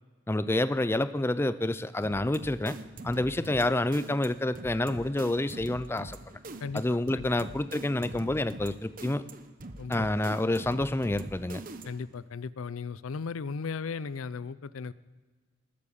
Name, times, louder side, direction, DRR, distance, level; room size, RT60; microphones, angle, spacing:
voice 1, 0.3-2.8 3.0-6.2 6.7-9.2 9.9-11.6, left 1 dB, 10° left, 14 dB, 0.4 m, -28 dB
sound 1, 2.0-12.1, right 2 dB, 40° right, 0.9 m, -44 dB
voice 2, 11.8-14.9, left 5 dB, 85° left, 18 dB, 0.5 m, -36 dB
19.5 x 8.6 x 7.0 m, 1.4 s
head